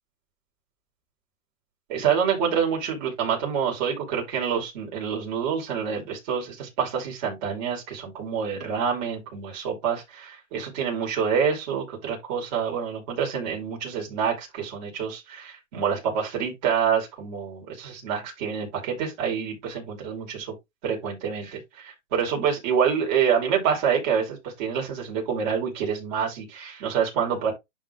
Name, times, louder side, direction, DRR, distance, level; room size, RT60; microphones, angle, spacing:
voice 1, 1.9-20.5 20.8-27.5, right 7 dB, 35° right, 4.8 m, -27 dB
11.5 x 3.9 x 3.1 m
hypercardioid pair, 165°, 39 cm